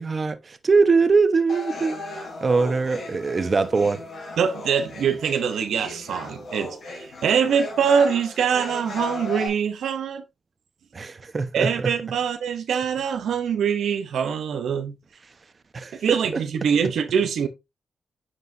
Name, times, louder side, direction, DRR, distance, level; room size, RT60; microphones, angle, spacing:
voice 1, 0.0-2.0 2.4-4.0 10.9-11.9 15.7-16.7, right 4 dB, 45° right, 1.0 m, -22 dB
sound 1, 1.5-9.5, left 2 dB, 70° left, 3.9 m, -36 dB
voice 2, 4.4-10.2 11.5-14.9 15.9-17.5, right 7 dB, 85° right, 0.8 m, -24 dB
9.5 x 4.8 x 2.7 m
cardioid pair, 60°, 0 cm